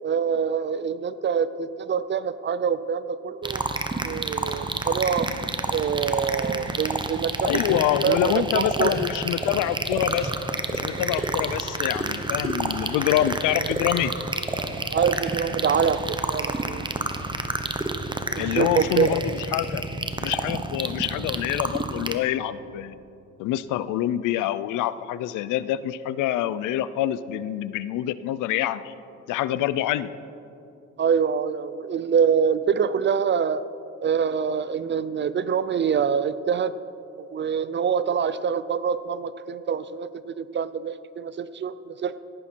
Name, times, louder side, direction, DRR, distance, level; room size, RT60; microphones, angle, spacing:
voice 1, 0.0-3.7 4.0-5.3 5.7-9.0 14.9-16.0 16.3-16.8 18.4-19.1 31.0-33.6 34.0-36.7 37.2-42.2, right 7 dB, 40° right, 15 dB, 0.5 m, -25 dB
sound 1, 3.4-22.2, right 2 dB, 15° right, 0.9 m, -29 dB
voice 2, 7.4-10.3 10.7-14.1 18.4-19.8 20.2-23.0 23.4-28.9 29.3-30.1, left 12 dB, 90° left, 16 dB, 0.5 m, -26 dB
17.0 x 10.0 x 4.5 m, 2.7 s
cardioid pair, 90°, 30 cm